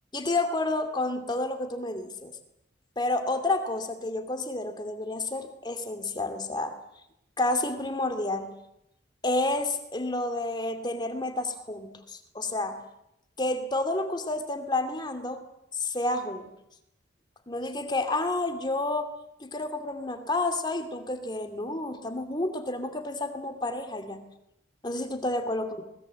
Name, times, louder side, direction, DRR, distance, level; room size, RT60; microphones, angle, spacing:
voice 1, 0.1-2.4 3.0-6.7 7.4-8.6 9.2-12.8 13.4-15.4 15.7-16.5 17.5-19.1 19.4-24.3 24.8-25.8, left 2 dB, 25° left, 6 dB, 2.5 m, -30 dB
26.0 x 20.0 x 7.7 m, 0.82 s
head